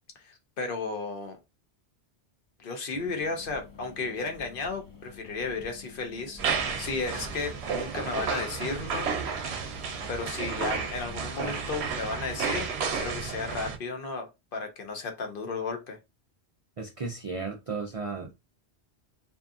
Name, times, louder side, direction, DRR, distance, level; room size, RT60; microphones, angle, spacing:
voice 1, 0.2-1.4 2.6-9.1 10.1-16.0, left 4 dB, 60° left, 0.8 m, -34 dB
sound 1, 2.9-11.9, left 5 dB, 35° left, 0.3 m, -50 dB
sound 2, 6.4-13.8, right 6 dB, 75° right, 0.8 m, -32 dB
voice 2, 16.8-18.3, right 4 dB, 60° right, 0.3 m, -34 dB
2.6 x 2.5 x 2.3 m
omnidirectional pair, 1.1 m